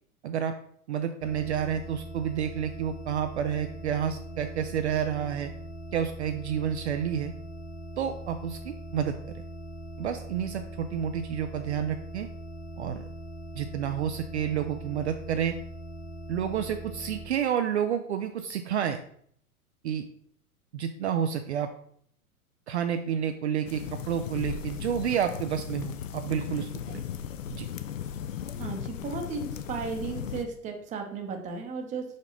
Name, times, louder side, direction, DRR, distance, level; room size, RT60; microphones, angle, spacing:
voice 1, 0.2-0.6 0.9-5.5 5.9-7.3 8.0-9.2 10.0-12.3 12.8-13.1 13.5-15.6 16.3-19.0 19.8-20.1 20.7-21.7 22.7-27.0 27.5-27.7, right 9 dB, 50° right, 7 dB, 0.5 m, -30 dB
sound 1, 1.2-17.3, right 1 dB, 20° left, 0.9 m, -41 dB
sound 2, 23.7-30.4, left 9 dB, 60° left, 0.6 m, -37 dB
voice 2, 28.6-32.0, right 4 dB, 15° right, 4 dB, 0.8 m, -35 dB
5.2 x 5.2 x 3.8 m, 0.66 s
figure-of-eight pair, 105°, 44 cm